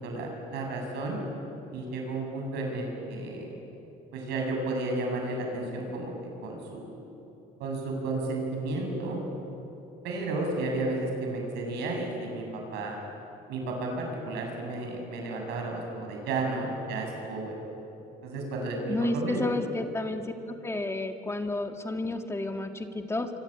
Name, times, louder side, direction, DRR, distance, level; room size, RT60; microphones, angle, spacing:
voice 1, 0.0-1.2 1.7-3.6 4.1-6.1 6.4-7.0 7.6-9.2 10.0-13.0 13.5-17.6 18.2-19.4, right 2 dB, 85° right, 1 dB, 7.7 m, -32 dB
voice 2, 18.9-20.3 20.6-23.3, left 2 dB, 15° left, 5 dB, 1.9 m, -31 dB
27.0 x 25.0 x 8.9 m, 2.9 s
cardioid pair, 110°, 17 cm